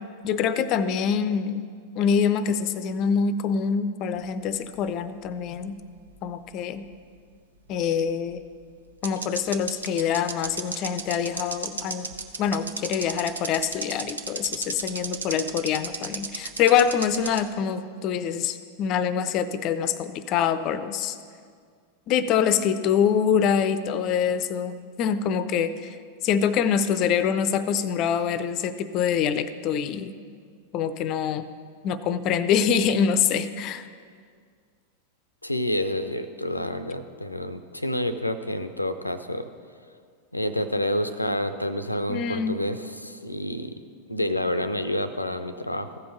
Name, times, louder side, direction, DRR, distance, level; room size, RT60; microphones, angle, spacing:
voice 1, 0.2-1.7 2.0-5.8 6.2-6.9 7.7-8.4 9.0-12.1 12.4-21.2 22.1-26.0 26.2-30.1 30.7-31.5 31.8-33.9 42.1-42.6, left 7 dB, 40° left, 13 dB, 0.5 m, -25 dB
sound 1, 4.5-6.1 6.4-6.5 8.3-8.4 9.0-17.4, right 4 dB, 75° right, 0.7 m, -33 dB
voice 2, 35.4-39.5 40.3-43.7 44.1-46.0, left 1 dB, 85° left, 11 dB, 0.5 m, -28 dB
15.0 x 5.3 x 6.4 m, 2.1 s
figure-of-eight pair, 90°, 0 cm